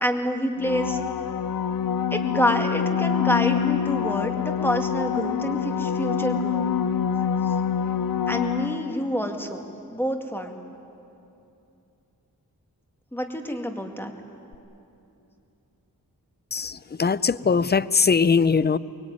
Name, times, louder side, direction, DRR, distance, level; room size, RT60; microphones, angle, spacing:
voice 1, 0.0-1.0 2.1-6.7 7.4-7.5 7.8-7.9 8.3-10.6 13.1-14.1, equal, 5° left, 4 dB, 2.3 m, -27 dB
sound 1, 0.6-9.2 14.5-14.6, left 8 dB, 60° left, 0.7 m, -26 dB
voice 2, 16.5-18.8, left 5 dB, 25° left, 17 dB, 0.5 m, -21 dB
24.0 x 21.5 x 9.6 m, 2.8 s
wide cardioid pair, 85°, 38 cm